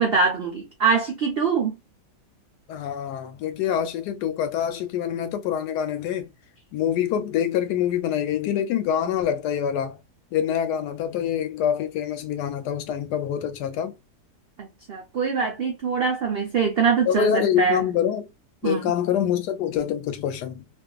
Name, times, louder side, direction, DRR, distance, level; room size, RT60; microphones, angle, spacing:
voice 1, 0.0-1.8 14.6-17.8 18.6-18.9, right 5 dB, 75° right, 0.5 m, -23 dB
voice 2, 2.7-6.3 6.7-10.0 10.3-14.0 17.1-18.3 18.6-20.7, left 9 dB, 80° left, 1.1 m, -25 dB
2.5 x 2.5 x 2.3 m
omnidirectional pair, 1.8 m